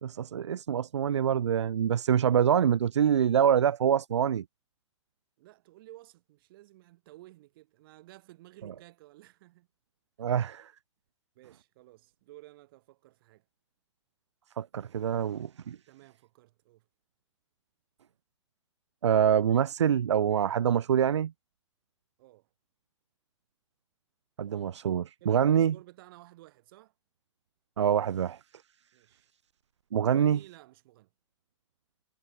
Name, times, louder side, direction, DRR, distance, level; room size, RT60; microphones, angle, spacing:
voice 1, 0.0-4.4 10.2-10.7 14.6-15.8 19.0-21.3 24.4-25.8 27.8-28.4 29.9-30.4, right 8 dB, 65° right, 0.7 m, -25 dB
voice 2, 5.4-9.7 11.4-13.4 15.7-16.9 22.2-22.5 25.2-26.9 28.9-29.3 30.0-31.1, right 17 dB, 45° right, 5.2 m, -54 dB
figure-of-eight pair, 105°, 16 cm